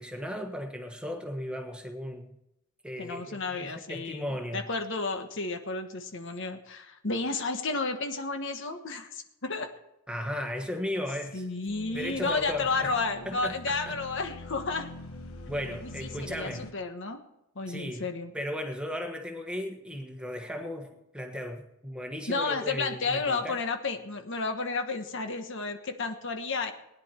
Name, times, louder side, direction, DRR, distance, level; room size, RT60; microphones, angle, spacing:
voice 1, 0.0-2.3 2.8-4.6 10.1-11.5 11.9-13.9 15.5-16.7 17.7-18.1 18.3-23.6, equal, 5° right, 4 dB, 1.4 m, -36 dB
voice 2, 3.0-9.7 11.3-14.9 15.8-17.2 17.5-18.3 22.3-26.7, left 3 dB, 60° left, 6 dB, 1.4 m, -32 dB
sound 1, 11.7-16.7, left 2 dB, 80° left, 1.4 m, -44 dB
19.5 x 10.5 x 4.5 m, 0.86 s
head